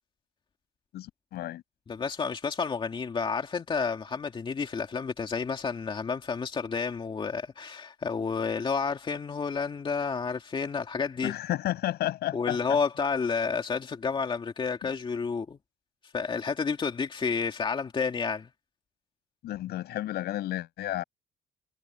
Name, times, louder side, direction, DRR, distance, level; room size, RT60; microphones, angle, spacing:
voice 1, 0.9-1.6 11.2-12.8 19.4-21.0, left 14 dB, 70° left, 7.7 m, -32 dB
voice 2, 1.9-11.3 12.3-15.6 16.1-18.5, left 5 dB, 30° left, 2.3 m, -30 dB
cardioid pair, 110°, 17 cm